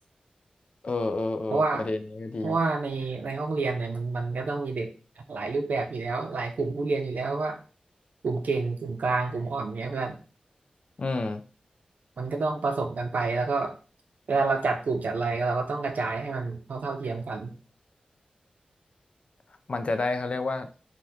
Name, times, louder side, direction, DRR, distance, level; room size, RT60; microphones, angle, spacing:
voice 1, 0.8-2.6 11.0-11.4 19.7-20.7, left 3 dB, 45° left, 8 dB, 0.4 m, -29 dB
voice 2, 1.5-1.9 2.4-7.6 8.2-10.2 12.2-13.7 14.3-17.5, right 3 dB, 80° right, 3 dB, 0.6 m, -28 dB
2.8 x 2.3 x 3.4 m, 0.36 s
wide cardioid pair, 100°, 3 cm